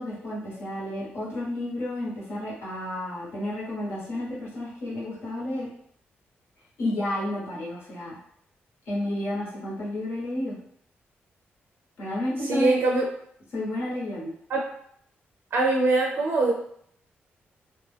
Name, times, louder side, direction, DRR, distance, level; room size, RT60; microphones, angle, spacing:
voice 1, 0.0-5.7 6.8-8.2 8.9-10.6 12.0-12.7 13.5-14.3, left 1 dB, 75° left, -6 dB, 1.0 m, -31 dB
voice 2, 12.4-13.1 14.5-14.6 15.5-16.5, right 2 dB, 65° right, -1 dB, 0.4 m, -22 dB
2.3 x 2.2 x 3.3 m, 0.67 s
cardioid pair, 125°, 4 cm